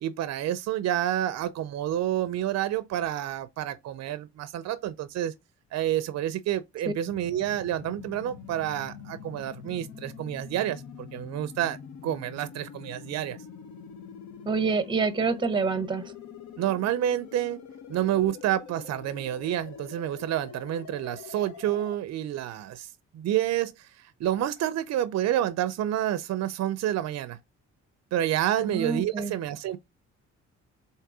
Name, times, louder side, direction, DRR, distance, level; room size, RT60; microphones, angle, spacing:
voice 1, 0.0-5.3 5.7-10.8 11.1-11.8 12.0-13.4 16.6-17.6 17.9-22.9 23.1-23.9 24.2-27.4 28.1-29.8, right 12 dB, 60° right, 0.5 m, -29 dB
sound 1, 7.1-22.0, left 7 dB, 70° left, 0.8 m, -45 dB
voice 2, 14.4-16.0 28.6-29.3, right 4 dB, 15° right, 0.6 m, -27 dB
3.7 x 2.7 x 4.7 m
cardioid pair, 90°, 30 cm